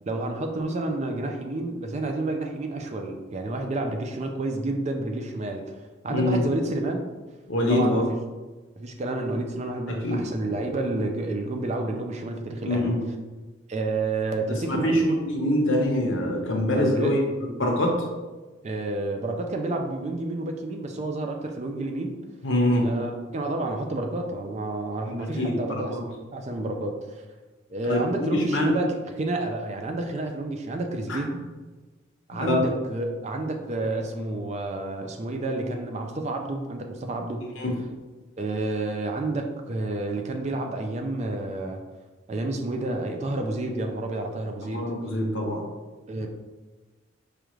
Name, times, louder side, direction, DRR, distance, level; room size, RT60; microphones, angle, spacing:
voice 1, 0.1-7.1 7.7-8.0 8.8-13.0 13.7-15.2 16.7-17.1 18.6-22.2 22.8-26.0 26.3-27.2 27.7-31.3 32.3-37.4 38.4-41.8 42.3-44.9 46.1-46.3, right 2 dB, 35° right, 4 dB, 0.3 m, -30 dB
voice 2, 6.1-6.4 7.5-8.1 9.9-10.2 12.6-13.0 14.7-17.2 17.6-18.0 22.4-22.9 25.1-26.0 27.9-28.7 31.1-31.2 32.4-32.6 37.6-37.7 44.7-45.6, left 1 dB, 70° left, 0 dB, 0.8 m, -24 dB
4.8 x 2.4 x 3.0 m, 1.2 s
head